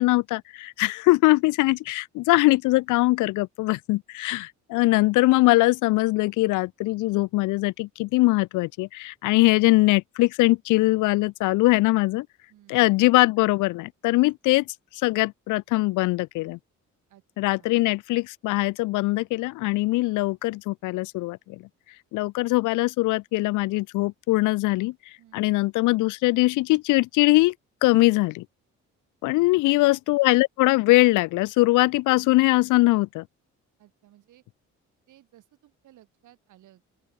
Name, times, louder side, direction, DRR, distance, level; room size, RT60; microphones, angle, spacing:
voice 1, 0.0-12.3 12.7-14.7 14.9-16.6 17.4-21.6 22.1-27.5 27.8-28.5 29.2-33.2, left 20 dB, 90° left, 0.5 m, -22 dB
voice 2, 12.5-12.9 17.1-17.2 17.5-17.7 25.2-25.5 29.4-29.5 33.8-34.4 35.1-36.9, right 13 dB, 80° right, 4.6 m, -56 dB
open air
cardioid pair, 90°, 30 cm